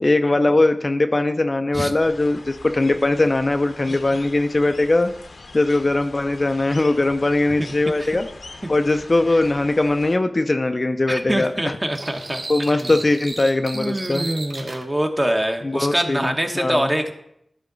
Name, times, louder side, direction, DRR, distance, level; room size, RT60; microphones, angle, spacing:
voice 1, 0.0-5.1 5.5-8.3 8.7-11.7 12.5-14.3 15.7-16.9, left 2 dB, 40° left, 7 dB, 0.5 m, -20 dB
sound 1, 2.0-10.2, left 3 dB, 70° left, 0.8 m, -42 dB
voice 2, 11.1-12.4 12.7-13.0 13.7-17.1, right 1 dB, 20° right, 4 dB, 1.0 m, -24 dB
sound 2, 11.9-14.8, right 2 dB, 50° right, 1.0 m, -34 dB
12.0 x 5.8 x 3.9 m, 0.76 s
wide cardioid pair, 80°, 0 cm